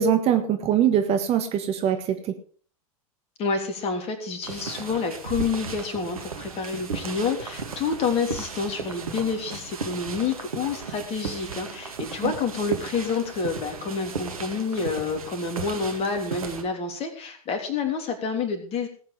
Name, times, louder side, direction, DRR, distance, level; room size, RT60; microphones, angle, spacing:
voice 1, 0.0-2.3 12.2-12.3, right 9 dB, 35° right, 7 dB, 1.7 m, -22 dB
voice 2, 3.4-18.9, left 5 dB, 30° left, 6 dB, 3.3 m, -28 dB
sound 1, 4.4-16.6, right 5 dB, 70° right, 2.1 m, -35 dB
18.0 x 8.7 x 5.0 m, 0.43 s
figure-of-eight pair, 90°, 19 cm